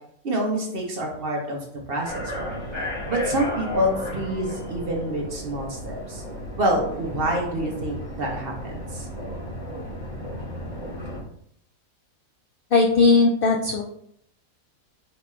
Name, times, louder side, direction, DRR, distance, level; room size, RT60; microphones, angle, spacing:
voice 1, 0.2-2.6 3.1-6.2 6.6-9.1, right 1 dB, 45° right, 0 dB, 1.0 m, -27 dB
sound 1, 2.0-11.2, left 1 dB, 20° left, 1.4 m, -34 dB
voice 2, 12.7-13.8, left 3 dB, 70° left, 1 dB, 0.5 m, -18 dB
4.5 x 3.6 x 3.1 m, 0.71 s
omnidirectional pair, 1.5 m